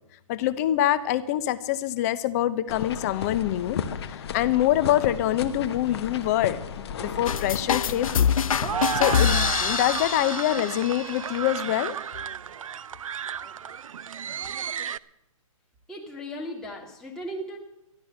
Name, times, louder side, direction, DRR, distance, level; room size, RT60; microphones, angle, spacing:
voice 1, 0.3-3.8 4.1-8.3 8.9-12.0, left 13 dB, 30° left, 16 dB, 0.8 m, -25 dB
sound 1, 2.7-10.2, left 7 dB, 50° left, 1.2 m, -35 dB
sound 2, 7.0-15.0, right 8 dB, 70° right, 0.6 m, -33 dB
sound 3, 7.3-10.9, left 8 dB, 75° left, 0.5 m, -25 dB
voice 2, 15.9-17.6, equal, 5° left, -2 dB, 1.6 m, -36 dB
13.0 x 11.5 x 7.8 m, 0.87 s
hypercardioid pair, 155°, 18 cm